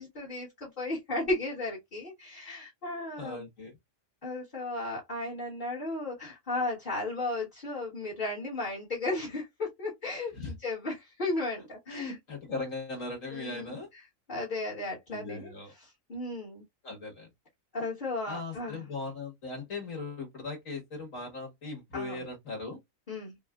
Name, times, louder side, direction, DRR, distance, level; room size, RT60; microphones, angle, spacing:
voice 1, 0.0-3.5 4.2-12.1 13.3-13.8 14.3-15.5 15.8-16.6 17.7-18.9 21.9-22.2 23.1-23.4, left 2 dB, 40° left, 1.4 m, -35 dB
voice 2, 3.2-3.8 10.3-10.5 11.6-13.9 15.1-15.7 16.8-17.3 18.3-22.8, left 3 dB, 75° left, 2.1 m, -39 dB
5.3 x 2.1 x 2.3 m
omnidirectional pair, 1.4 m